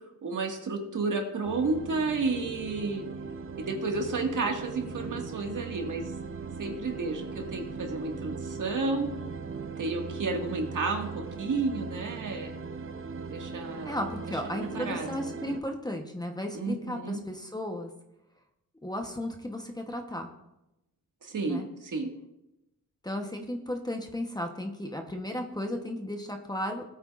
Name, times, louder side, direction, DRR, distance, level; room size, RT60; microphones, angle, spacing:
voice 1, 0.2-3.0 3.6-6.1 6.6-9.1 9.8-11.1 11.4-12.5 13.3-14.0 14.7-15.1 16.5-17.2 21.2-22.1, right 3 dB, 60° right, 2 dB, 1.9 m, -31 dB
sound 1, 1.4-15.6, right 4 dB, 40° right, 0.6 m, -39 dB
voice 2, 13.9-17.9 18.8-20.3 21.5-21.7 23.0-26.8, left 1 dB, 10° left, 3 dB, 1.0 m, -34 dB
19.0 x 8.8 x 2.5 m, 0.91 s
wide cardioid pair, 110°, 35 cm